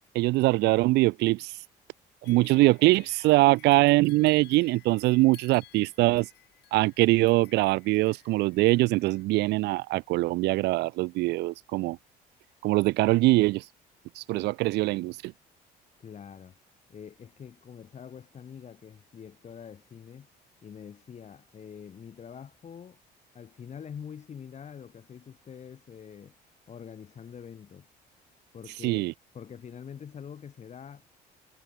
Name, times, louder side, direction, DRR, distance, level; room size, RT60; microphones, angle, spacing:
voice 1, 0.1-1.5 2.2-6.3 6.7-12.0 12.6-13.6 14.2-15.3 28.8-29.1, right 20 dB, 85° right, 0.7 m, -23 dB
sound 1, 2.2-9.2, left 15 dB, 75° left, 6.4 m, -56 dB
voice 2, 16.0-16.6 16.9-20.3 20.6-23.0 23.3-26.4 26.7-27.9 28.5-31.1, left 7 dB, 40° left, 5.8 m, -45 dB
cardioid pair, 110°, 17 cm